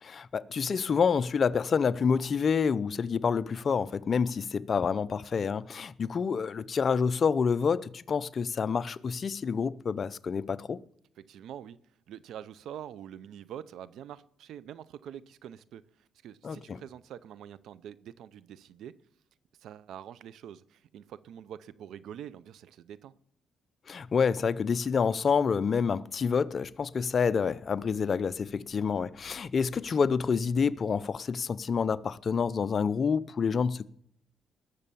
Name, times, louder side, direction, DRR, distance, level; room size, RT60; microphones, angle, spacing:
voice 1, 0.0-10.8 16.4-16.8 23.9-33.9, left 6 dB, 45° left, 0.6 m, -28 dB
voice 2, 11.2-11.8 12.1-15.8 16.2-18.9 19.6-23.1, right 10 dB, 75° right, 0.6 m, -45 dB
19.5 x 6.7 x 6.9 m
cardioid pair, 90°, 0 cm